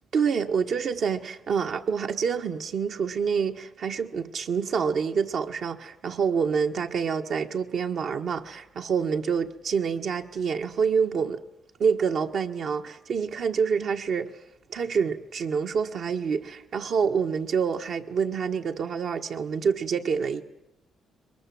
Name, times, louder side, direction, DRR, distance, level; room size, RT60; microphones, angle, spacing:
voice 1, 0.1-11.4 11.8-14.3 14.7-20.4, right 6 dB, 60° right, 1.6 m, -27 dB
22.5 x 20.5 x 7.8 m
cardioid pair, 90°, 0 cm